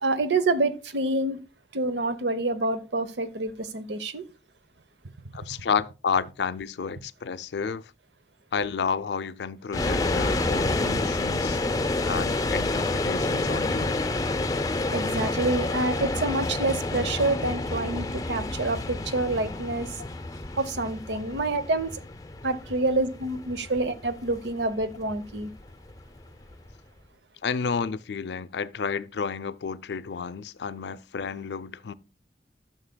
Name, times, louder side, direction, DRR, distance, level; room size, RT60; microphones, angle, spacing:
voice 1, 0.0-1.4 1.7-4.2 14.9-20.0 20.6-21.9 22.4-25.5, right 2 dB, 80° right, 0.8 m, -27 dB
voice 2, 5.3-7.9 8.5-11.6 12.0-14.0 20.0-20.1 21.1-21.2 22.8-22.9 27.4-31.9, left 6 dB, 80° left, 0.5 m, -31 dB
sound 1, 9.7-26.7, left 2 dB, 20° left, 0.5 m, -29 dB
13.0 x 6.5 x 2.2 m
head